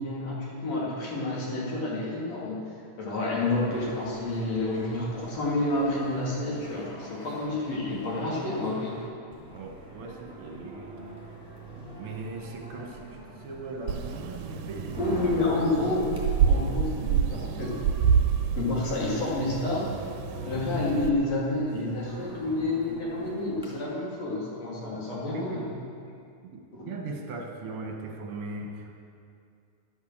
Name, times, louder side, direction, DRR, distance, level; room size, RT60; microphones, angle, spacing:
voice 1, 0.0-9.0 15.0-16.1 16.5-17.9 18.6-20.0 20.4-25.7 26.7-26.9, left 2 dB, 55° left, -5 dB, 3.6 m, -29 dB
sound 1, 3.4-9.1, left 1 dB, 90° left, 4.7 m, -46 dB
sound 2, 9.3-23.7, right 1 dB, ahead, 3.3 m, -44 dB
voice 2, 9.5-10.9 11.7-15.0 26.5-28.9, right 3 dB, 50° right, 1 dB, 2.1 m, -39 dB
sound 3, 13.9-21.1, right 7 dB, 85° right, 2.3 m, -28 dB
12.0 x 9.4 x 7.5 m, 2.4 s
omnidirectional pair, 3.7 m